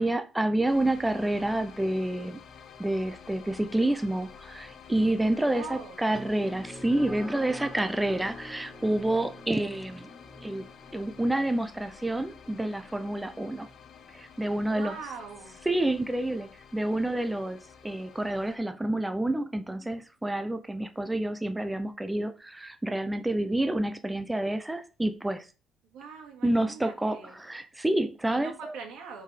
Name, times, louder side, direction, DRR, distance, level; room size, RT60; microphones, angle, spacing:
voice 1, 0.0-2.4 2.8-10.1 10.4-10.6 10.9-13.7 14.1-15.0 15.7-17.6 17.8-25.5 26.4-28.7, right 1 dB, 5° right, 0.5 m, -28 dB
sound 1, 0.7-18.6, left 7 dB, 45° left, 0.7 m, -51 dB
voice 2, 5.5-6.0 14.7-15.6 25.9-27.4 28.3-29.2, right 5 dB, 90° right, 2.2 m, -42 dB
sound 2, 6.1-15.0, left 1 dB, 10° left, 0.9 m, -47 dB
6.3 x 4.8 x 4.9 m
cardioid pair, 175°, 0 cm